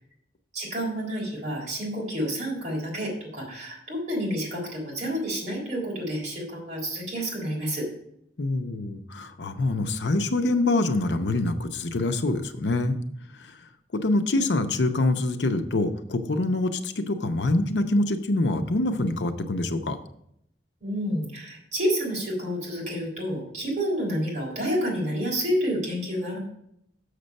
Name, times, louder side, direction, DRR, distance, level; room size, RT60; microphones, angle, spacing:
voice 1, 0.5-7.9 20.8-26.4, equal, 45° right, -3 dB, 3.6 m, -29 dB
voice 2, 8.4-13.0 13.9-20.0, left 2 dB, 85° left, 8 dB, 0.7 m, -25 dB
6.7 x 6.6 x 5.3 m, 0.74 s
head